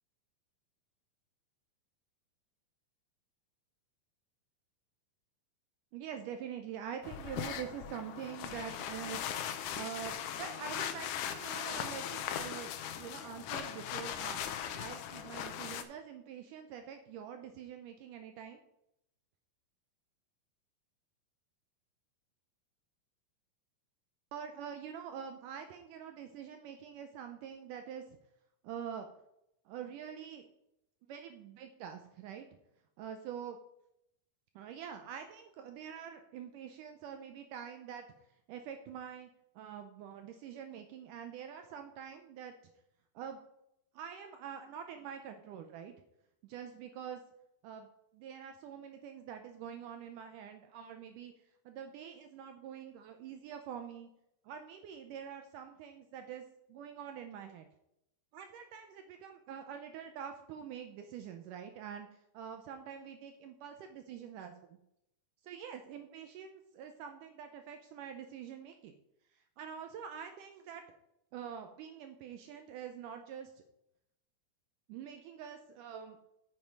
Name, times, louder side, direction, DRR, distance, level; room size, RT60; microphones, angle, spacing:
voice 1, 5.9-9.2 9.5-14.5 14.7-18.6 24.3-28.2 28.6-29.1 29.7-30.4 31.1-32.5 33.0-33.6 34.6-38.1 38.5-39.3 39.6-42.5 43.2-43.4 43.9-45.9 46.4-47.2 47.6-47.9 48.1-51.3 51.7-54.1 54.4-57.7 58.3-64.5 65.4-68.9 69.3-70.8 71.3-73.6 74.9-76.2, right 8 dB, 80° right, 6 dB, 1.9 m, -45 dB
sound 1, 7.0-15.8, left 9 dB, 85° left, 1.8 m, -39 dB
8.9 x 7.6 x 4.6 m, 0.80 s
omnidirectional pair, 4.4 m